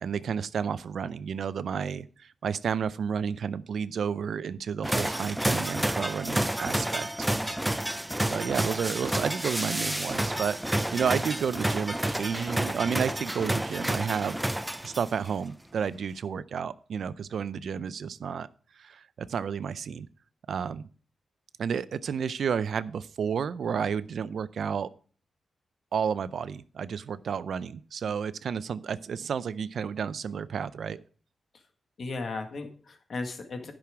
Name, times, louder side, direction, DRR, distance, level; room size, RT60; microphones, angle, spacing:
voice 1, 0.0-7.3 8.3-14.4 14.8-18.5 18.8-20.1 20.5-20.9 21.6-24.9 25.9-31.0, right 7 dB, 75° right, 16 dB, 0.5 m, -31 dB
sound 1, 4.8-15.3, right 1 dB, 10° right, 0.5 m, -30 dB
voice 2, 32.0-33.7, left 3 dB, 60° left, 6 dB, 1.6 m, -36 dB
10.5 x 6.1 x 4.9 m, 0.43 s
cardioid pair, 65°, 0 cm